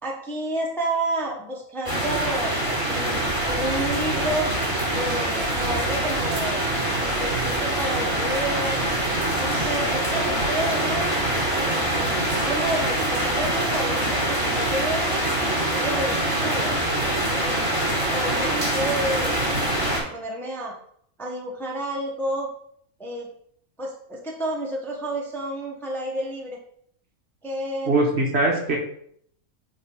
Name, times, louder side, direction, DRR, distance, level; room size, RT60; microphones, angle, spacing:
voice 1, 0.0-4.5 4.9-6.6 7.0-11.1 11.5-12.2 12.4-15.2 15.7-16.7 17.3-17.7 18.1-20.7 21.2-22.5 23.0-23.3 23.8-26.6 27.4-28.1, right 1 dB, ahead, -1 dB, 0.9 m, -30 dB
sound 1, 1.8-20.0, right 1 dB, 20° right, 2.6 m, -24 dB
voice 2, 27.9-28.8, right 2 dB, 50° right, 0 dB, 1.3 m, -21 dB
7.7 x 3.0 x 4.5 m, 0.65 s
omnidirectional pair, 1.5 m